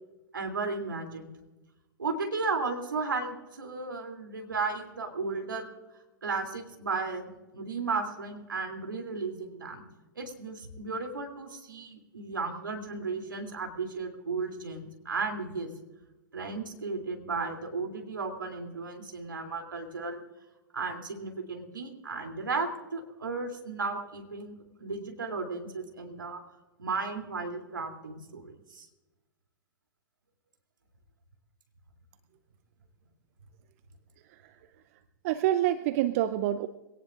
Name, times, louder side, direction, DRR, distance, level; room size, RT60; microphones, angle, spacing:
voice 1, 0.3-1.3 2.0-5.7 6.2-9.9 10.1-15.7 16.3-20.2 20.7-26.4 26.8-28.9, right 4 dB, 75° right, 4 dB, 3.0 m, -34 dB
voice 2, 34.3-34.6 35.2-36.7, right 13 dB, 45° right, 13 dB, 0.6 m, -27 dB
22.5 x 18.0 x 2.5 m, 1.1 s
figure-of-eight pair, 105°, 11 cm